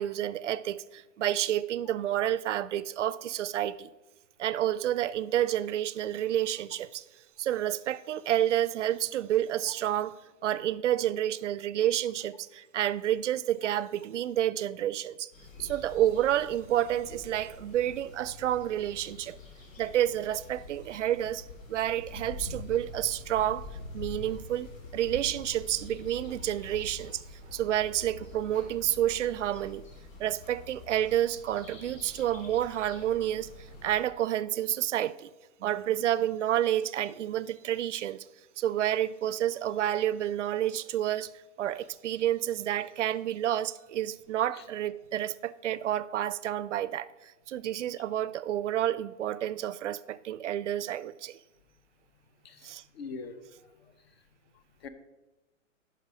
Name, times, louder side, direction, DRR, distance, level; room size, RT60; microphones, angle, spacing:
voice 1, 0.0-3.9 4.4-7.0 7.4-10.2 10.4-15.3 15.6-19.4 19.8-23.7 23.9-29.8 30.2-35.3 35.6-38.3 38.6-41.3 41.6-51.4 52.6-52.8, right 12 dB, 65° right, 0.5 m, -29 dB
sound 1, 15.3-34.1, left 3 dB, 80° left, 3.0 m, -46 dB
voice 2, 52.4-54.2 54.5-54.9, left 4 dB, 50° left, 0.9 m, -45 dB
10.0 x 5.7 x 4.8 m
hypercardioid pair, 165°, 39 cm